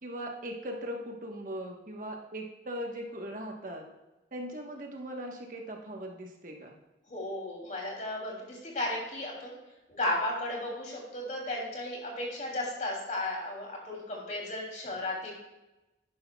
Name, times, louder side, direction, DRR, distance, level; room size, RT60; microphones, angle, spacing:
voice 1, 0.0-3.9 4.3-6.8, equal, 50° right, 1 dB, 1.2 m, -39 dB
voice 2, 7.1-9.6 9.9-15.3, left 1 dB, 45° left, -2 dB, 2.9 m, -34 dB
11.0 x 10.5 x 2.3 m, 1.0 s
head